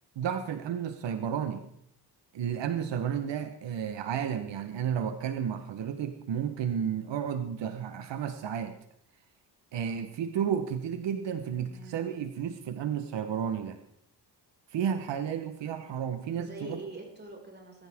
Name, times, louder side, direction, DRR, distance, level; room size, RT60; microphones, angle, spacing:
voice 1, 0.2-1.6 2.3-8.8 9.7-13.8 14.7-16.8, right 8 dB, 85° right, 8 dB, 1.3 m, -32 dB
voice 2, 11.5-12.0 16.4-17.9, right 2 dB, 25° right, -1 dB, 5.8 m, -45 dB
21.5 x 14.5 x 3.7 m, 0.68 s
cardioid pair, 105°, 42 cm